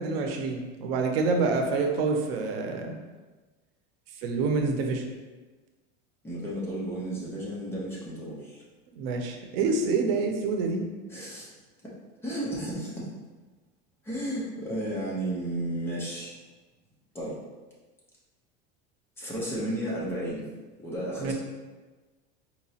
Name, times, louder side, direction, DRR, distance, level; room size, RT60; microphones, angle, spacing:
voice 1, 0.0-2.9 4.2-5.0 9.0-10.8 21.2-21.3, right 4 dB, 85° right, 3 dB, 0.7 m, -27 dB
voice 2, 6.2-8.6 11.1-11.5 12.2-13.1 14.0-16.4 17.1-17.4 19.2-20.5 20.8-21.3, right 1 dB, 10° left, -7 dB, 0.7 m, -33 dB
4.5 x 2.9 x 2.8 m, 1.3 s
cardioid pair, 170°, 29 cm